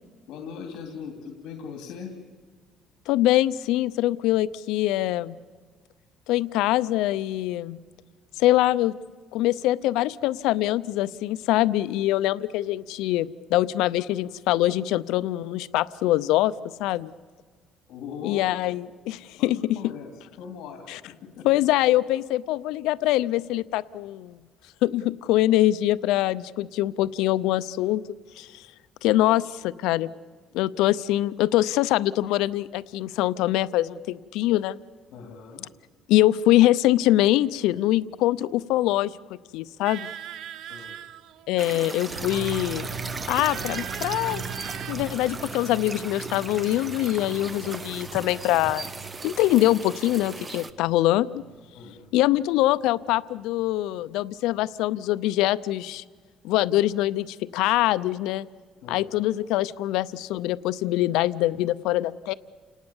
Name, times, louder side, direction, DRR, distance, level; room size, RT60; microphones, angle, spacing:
voice 1, 0.3-2.1 17.9-18.5 19.4-19.5 19.7-20.1 20.4-21.5 35.1-35.7 40.7-41.0 51.7-52.1 58.8-59.1, left 6 dB, 70° left, 4 dB, 2.8 m, -40 dB
voice 2, 3.1-5.4 6.3-7.8 8.4-8.9 9.3-16.5 16.8-17.1 18.2-19.8 20.9-21.0 21.4-24.4 24.8-28.0 28.4-28.6 29.0-30.1 30.5-34.8 36.1-39.2 39.5-40.1 41.5-42.9 43.3-44.4 44.9-48.9 49.2-51.4 52.1-56.0 56.4-58.4 58.9-62.3, left 15 dB, 90° left, 16 dB, 0.6 m, -23 dB
sound 1, 39.8-41.7 42.3-44.9, right 11 dB, 60° right, 0.8 m, -40 dB
sound 2, 41.6-50.7, right 3 dB, 20° right, 0.9 m, -37 dB
sound 3, 42.1-53.1, right 5 dB, 90° right, 1.4 m, -41 dB
30.0 x 18.5 x 7.2 m, 1.6 s
cardioid pair, 155°, 0 cm